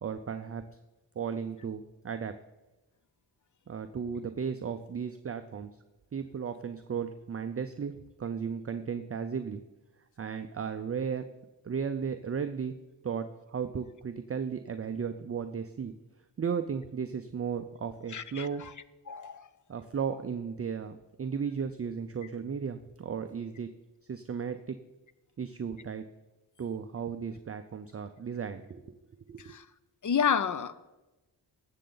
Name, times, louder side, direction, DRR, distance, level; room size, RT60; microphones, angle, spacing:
voice 1, 0.0-0.6 1.2-2.3 3.7-5.7 6.1-9.6 10.2-11.2 11.6-12.7 13.0-16.0 16.4-18.6 19.7-23.7 24.1-24.8 25.4-26.0 26.6-28.9 29.3-29.5, right 6 dB, 35° right, 8 dB, 0.5 m, -35 dB
voice 2, 18.1-18.5 19.1-19.4 29.5-29.6 30.0-30.7, left 7 dB, 45° left, 14 dB, 0.6 m, -29 dB
18.5 x 7.5 x 3.9 m, 1.1 s
wide cardioid pair, 130°, 44 cm